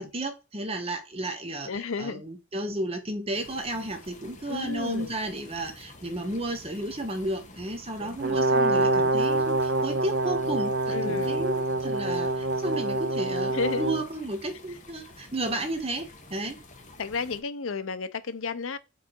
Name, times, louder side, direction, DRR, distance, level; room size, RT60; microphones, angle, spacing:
voice 1, 0.0-1.7 2.0-16.6, right 1 dB, 25° right, 1.1 m, -33 dB
voice 2, 1.7-2.2 4.5-5.1 8.0-9.0 10.9-11.4 13.5-13.9 14.5-14.8 17.0-18.8, left 4 dB, 70° left, 0.6 m, -33 dB
sound 1, 3.3-17.4, left 2 dB, 35° left, 1.3 m, -49 dB
Brass instrument, 8.2-14.0, right 2 dB, 55° right, 0.6 m, -26 dB
4.9 x 4.7 x 4.5 m
head